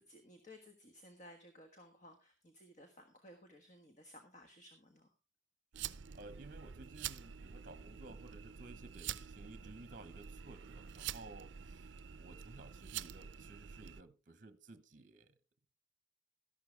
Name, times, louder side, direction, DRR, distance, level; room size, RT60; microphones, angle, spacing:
voice 1, 0.0-5.1, left 1 dB, 35° left, 1.4 m, -58 dB
sound 1, 5.7-14.0, right 9 dB, 65° right, 0.5 m, -47 dB
voice 2, 5.8-15.4, right 2 dB, 40° right, 0.9 m, -55 dB
13.0 x 11.5 x 3.3 m
head